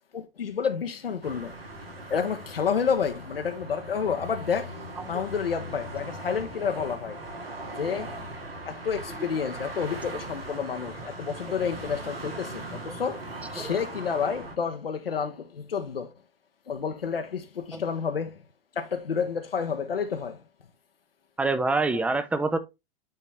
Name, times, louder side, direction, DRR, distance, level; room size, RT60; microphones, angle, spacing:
voice 1, 0.1-1.6 2.1-4.8 5.1-7.2 7.8-8.2 8.7-13.3 13.5-16.1 16.7-18.4 18.7-20.4 21.9-22.0, left 6 dB, 75° left, 1.0 m, -30 dB
sound 1, 1.2-14.5, right 1 dB, 80° right, 2.3 m, -39 dB
voice 2, 21.4-22.6, right 3 dB, 5° right, 0.5 m, -26 dB
9.0 x 4.1 x 3.3 m
figure-of-eight pair, 100°, 29 cm